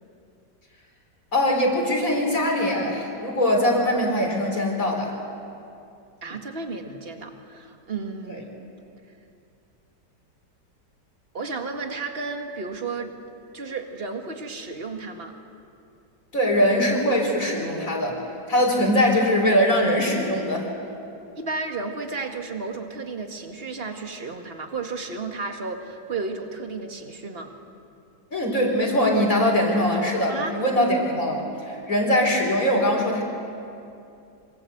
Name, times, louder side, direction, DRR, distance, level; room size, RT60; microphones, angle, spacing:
voice 1, 1.3-5.1 8.3-8.4 16.3-18.2 18.5-20.7 28.3-33.2, equal, 50° left, 0 dB, 4.2 m, -22 dB
voice 2, 6.2-8.6 11.3-13.1 13.5-15.3 21.4-27.5 30.3-30.6, right 4 dB, 35° right, 4 dB, 2.1 m, -33 dB
26.0 x 25.5 x 8.0 m, 2.6 s
omnidirectional pair, 1.9 m